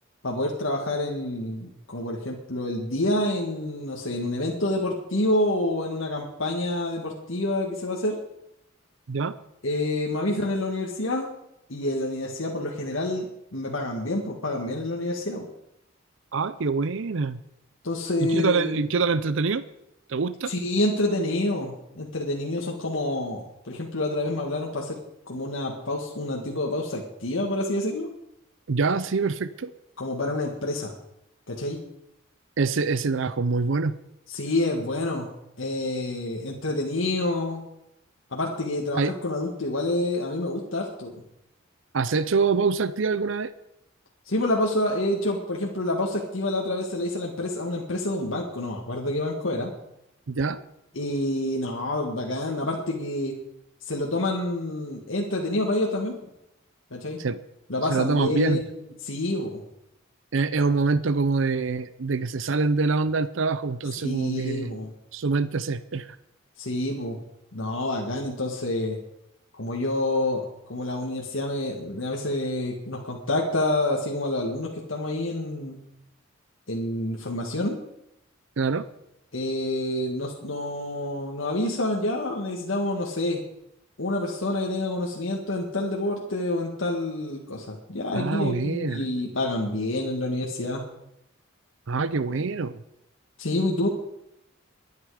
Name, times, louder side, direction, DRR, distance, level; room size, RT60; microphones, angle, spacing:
voice 1, 0.2-8.2 9.6-11.3 11.7-13.3 13.5-15.5 17.8-18.7 20.5-25.0 25.3-28.1 30.0-30.9 31.5-31.8 34.3-35.3 35.6-37.6 38.3-41.2 44.3-49.7 50.9-53.3 53.8-56.1 56.9-57.2 57.7-59.6 64.0-64.9 66.6-67.2 67.5-69.0 69.5-75.8 76.7-77.8 79.3-83.4 84.0-90.8 93.4-93.9, left 1 dB, 75° left, -1 dB, 1.8 m, -28 dB
voice 2, 16.3-17.4 18.2-19.6 20.1-20.5 28.7-29.7 32.6-34.0 38.9-39.1 41.9-43.5 50.3-50.6 57.2-57.4 57.9-58.6 60.3-64.7 65.1-66.2 78.6-78.9 88.1-89.1 91.9-92.8, right 4 dB, 70° right, 14 dB, 0.6 m, -25 dB
22.0 x 9.5 x 4.9 m, 0.83 s
head